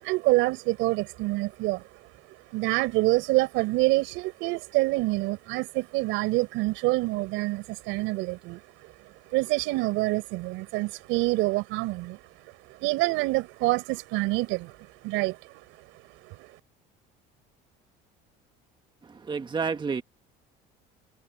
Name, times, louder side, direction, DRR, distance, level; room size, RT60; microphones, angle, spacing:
voice 1, 0.0-1.8 2.5-8.9 9.3-12.2 12.8-14.8 15.0-15.6 16.2-16.5, right 22 dB, 75° right, 6.0 m, -26 dB
voice 2, 19.2-20.0, right 5 dB, 20° right, 1.3 m, -29 dB
supercardioid pair, 95°, 20 cm